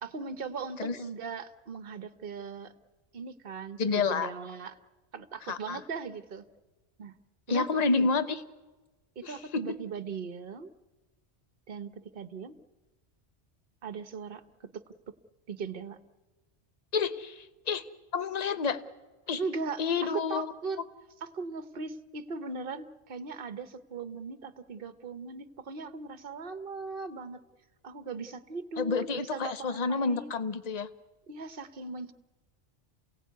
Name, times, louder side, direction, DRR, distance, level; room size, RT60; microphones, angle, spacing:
voice 1, 0.0-2.7 3.1-4.7 5.1-6.4 7.0-7.1 7.5-8.1 9.2-10.7 11.7-12.5 13.8-14.8 15.5-16.0 19.4-20.8 21.2-27.5 27.8-30.3 31.3-32.1, right 4 dB, 55° right, 13 dB, 1.2 m, -39 dB
voice 2, 3.8-4.3 5.5-5.8 7.5-8.4 9.2-9.8 16.9-17.8 18.1-18.8 19.3-19.4 19.8-20.5 28.8-30.9, left 4 dB, 40° left, 12 dB, 1.0 m, -29 dB
28.0 x 17.0 x 9.4 m, 1.2 s
omnidirectional pair, 1.2 m